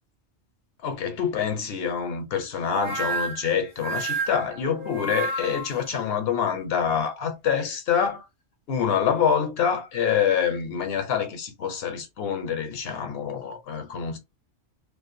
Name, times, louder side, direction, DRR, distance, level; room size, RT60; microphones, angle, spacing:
voice 1, 0.8-8.3 8.7-14.2, left 7 dB, 60° left, 0.9 m, -26 dB
sound 1, 2.7-5.8, right 4 dB, 65° right, 1.0 m, -30 dB
2.5 x 2.2 x 2.6 m
omnidirectional pair, 1.2 m